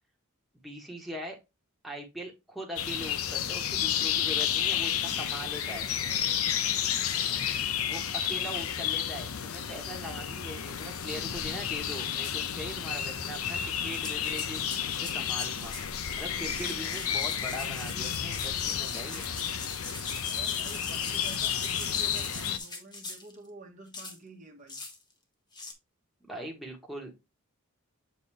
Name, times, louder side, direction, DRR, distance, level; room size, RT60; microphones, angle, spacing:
voice 1, 0.6-1.4 1.8-5.9 7.9-15.7 16.2-19.3 26.3-27.1, equal, ahead, -1 dB, 1.4 m, -41 dB
sound 1, 2.8-22.6, left 9 dB, 80° left, 0.7 m, -31 dB
voice 2, 7.0-7.8 16.7-17.0 20.3-24.8, right 3 dB, 35° right, 1 dB, 1.4 m, -50 dB
sound 2, 13.9-15.9 16.4-23.3 23.9-24.2 24.7-25.0 25.5-25.7, left 3 dB, 20° left, 1.2 m, -41 dB
7.0 x 4.1 x 3.3 m, 0.22 s
head